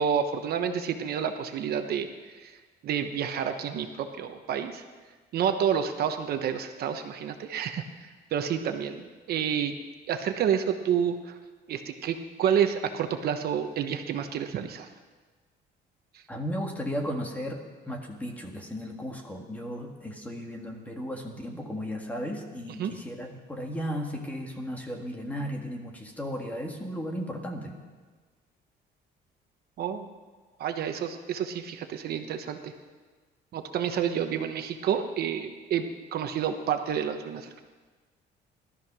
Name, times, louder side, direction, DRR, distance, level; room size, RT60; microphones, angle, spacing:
voice 1, 0.0-2.6 2.8-4.8 5.3-9.7 10.1-11.4 11.7-14.9 16.1-16.2 22.8-22.9 29.8-30.1 30.6-32.7 33.5-37.6, right 8 dB, 55° right, 7 dB, 1.1 m, -29 dB
voice 2, 16.3-27.7, equal, 10° left, 1 dB, 1.8 m, -35 dB
18.0 x 13.0 x 6.1 m, 1.4 s
cardioid pair, 170°, 19 cm